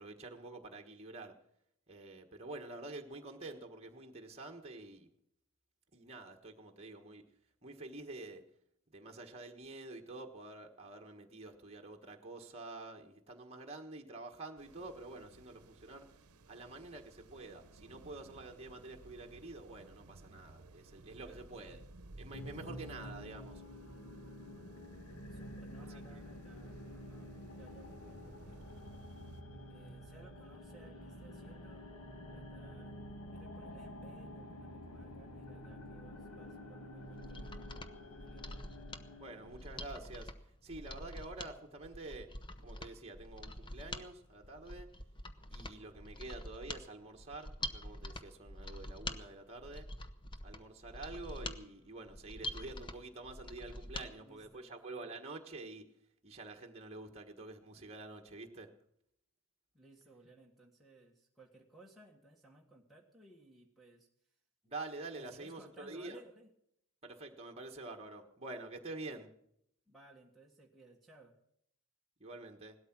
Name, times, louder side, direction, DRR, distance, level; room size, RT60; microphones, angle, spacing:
voice 1, 0.0-1.3 1.9-5.1 5.9-7.2 7.6-8.4 8.9-16.1 16.5-21.9 22.2-23.6 26.1-26.2 39.2-40.3 40.6-42.3 42.6-44.9 45.5-49.9 50.4-55.9 56.2-58.7 64.6-66.2 67.0-69.3 72.2-72.8, right 2 dB, 30° right, 2 dB, 1.4 m, -48 dB
sound 1, 14.6-29.4, right 2 dB, 75° right, 0.9 m, -58 dB
voice 2, 21.2-21.8 22.6-22.7 25.3-28.6 29.7-31.9 32.3-32.9 33.3-37.7 38.2-38.5 54.0-54.7 59.7-64.1 65.1-66.5 69.9-71.4, right 2 dB, ahead, -4 dB, 1.5 m, -60 dB
sound 2, 22.3-39.8, left 1 dB, 65° left, 2.0 m, -49 dB
Mechanisms, 37.0-54.1 54.4-54.5, left 1 dB, 20° left, 0.9 m, -46 dB
17.5 x 12.5 x 6.1 m, 0.74 s
head